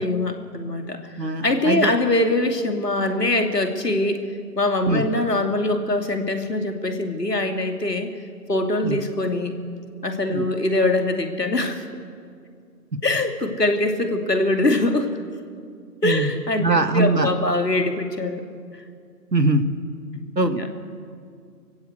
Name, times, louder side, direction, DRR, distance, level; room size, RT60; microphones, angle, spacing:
voice 1, 0.0-1.0 1.4-4.2 4.6-8.1 8.5-9.5 10.0-11.9 13.0-15.2 16.0-18.5 20.4-20.7, left 2 dB, 75° left, 5 dB, 2.7 m, -23 dB
voice 2, 1.2-1.9 4.9-5.0 8.8-9.0 10.3-10.4 16.0-16.3 16.6-17.3 19.3-19.6 20.4-20.7, right 2 dB, 85° right, 10 dB, 1.9 m, -21 dB
24.5 x 16.0 x 8.1 m, 2.3 s
figure-of-eight pair, 150°, 49 cm